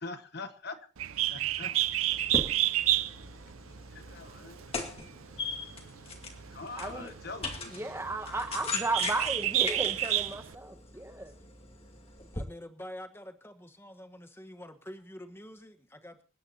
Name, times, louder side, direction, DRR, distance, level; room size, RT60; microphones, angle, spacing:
voice 1, 0.0-0.8 1.1-1.8 3.9-4.6 6.5-7.7, left 3 dB, 50° left, 8 dB, 1.3 m, -43 dB
Bird, 1.0-10.5, right 14 dB, 85° right, 0.7 m, -31 dB
sound 1, 2.1-12.4, left 3 dB, 30° left, 2.1 m, -40 dB
voice 2, 6.7-7.1 7.7-11.3, right 2 dB, 10° right, 7 dB, 1.1 m, -34 dB
voice 3, 12.3-16.2, left 1 dB, 10° left, 8 dB, 1.2 m, -46 dB
27.5 x 10.0 x 2.8 m, 0.34 s
head